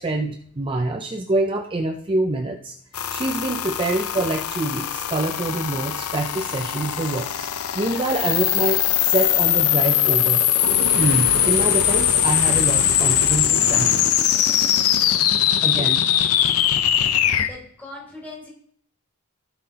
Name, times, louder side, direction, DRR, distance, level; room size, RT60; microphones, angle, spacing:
voice 1, 0.0-2.7 3.1-7.5 7.7-10.4 11.0-14.0 15.6-16.0 17.0-17.1, right 2 dB, 25° right, 4 dB, 0.5 m, -25 dB
sound 1, 2.9-17.5, left 11 dB, 85° left, 0.6 m, -21 dB
Fire, 10.6-14.2, right 4 dB, 65° right, 0.7 m, -30 dB
voice 2, 15.7-16.5 17.4-18.5, left 2 dB, 10° left, -5 dB, 3.5 m, -42 dB
16.0 x 5.7 x 2.8 m, 0.63 s
head